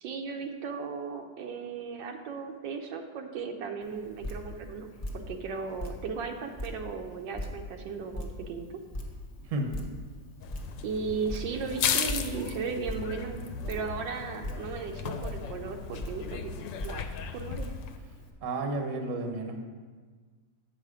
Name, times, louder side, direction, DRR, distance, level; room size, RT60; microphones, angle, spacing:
voice 1, 0.0-4.9 5.1-8.7 10.8-13.4 13.7-17.0 17.3-17.7, right 5 dB, 80° right, 4 dB, 1.4 m, -36 dB
Drip, 3.8-18.3, left 1 dB, 30° left, 0.7 m, -41 dB
voice 2, 9.4-9.8 18.4-19.7, right 2 dB, 55° right, 4 dB, 1.1 m, -32 dB
sound 1, 10.4-18.0, left 7 dB, 85° left, 1.3 m, -36 dB
7.9 x 5.7 x 4.9 m, 1.5 s
omnidirectional pair, 2.0 m